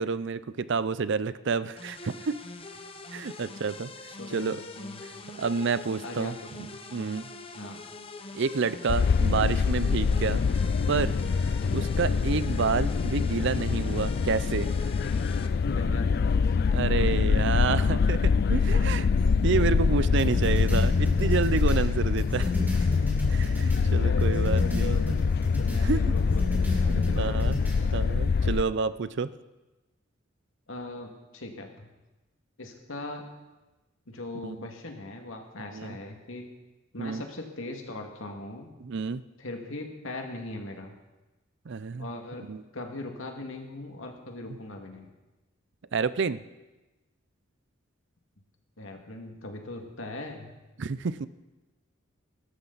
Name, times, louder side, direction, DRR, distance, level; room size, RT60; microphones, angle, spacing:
voice 1, 0.0-2.4 3.1-4.6 5.4-6.3 6.9-7.3 8.3-10.4 10.9-11.1 11.7-14.9 16.7-19.1 19.4-22.5 23.3-25.0 25.8-26.0 26.9-27.6 27.9-29.3 34.4-34.7 35.7-36.0 37.0-37.2 38.8-39.2 41.7-42.1 42.5-42.6 45.9-46.4 50.8-51.3, right 5 dB, 60° right, 15 dB, 0.5 m, -29 dB
sound 1, 1.8-15.5, left 2 dB, 25° left, 0.9 m, -43 dB
voice 2, 4.2-5.0 6.0-6.7 7.5-7.9 15.6-16.6 17.1-17.2 19.6-19.7 20.2-21.0 23.6-25.2 25.6-27.5 30.7-31.9 32.6-33.2 34.1-36.5 36.9-38.7 39.4-41.0 42.0-42.5 42.7-45.1 48.8-50.5, left 2 dB, 75° left, 3 dB, 2.2 m, -39 dB
sound 2, 8.9-28.6, left 5 dB, 50° left, 0.3 m, -25 dB
sound 3, 20.2-23.9 24.2-25.8 26.2-27.8, left 1 dB, 10° right, 3.0 m, -34 dB
19.5 x 12.5 x 4.1 m, 1.1 s
head